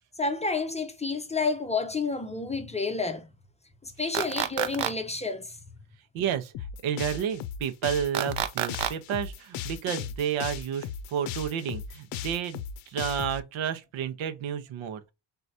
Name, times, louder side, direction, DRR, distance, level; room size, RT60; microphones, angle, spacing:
voice 1, 0.2-3.2 3.8-5.6, left 3 dB, 15° left, 0.5 m, -30 dB
sound 1, 4.1-4.9 8.1-8.9, right 11 dB, 65° right, 0.7 m, -28 dB
voice 2, 6.1-6.5 6.8-15.1, right 9 dB, 85° right, 1.0 m, -31 dB
sound 2, 6.5-13.4, left 8 dB, 75° left, 0.6 m, -37 dB
4.6 x 4.0 x 2.7 m
cardioid pair, 140°, 47 cm